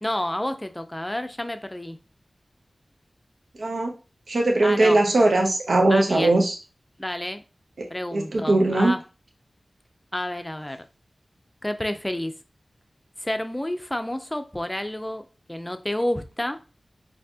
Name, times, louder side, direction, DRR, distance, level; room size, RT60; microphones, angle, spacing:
voice 1, 0.0-2.0 4.6-5.0 5.9-6.3 7.0-7.4 7.9-9.0 10.1-10.8 11.6-12.3 13.2-16.6, left 1 dB, 15° left, 0.4 m, -29 dB
voice 2, 3.6-3.9 4.3-6.6 7.8-8.9, right 2 dB, 85° right, 0.7 m, -20 dB
4.3 x 2.7 x 2.8 m
wide cardioid pair, 70°, 0 cm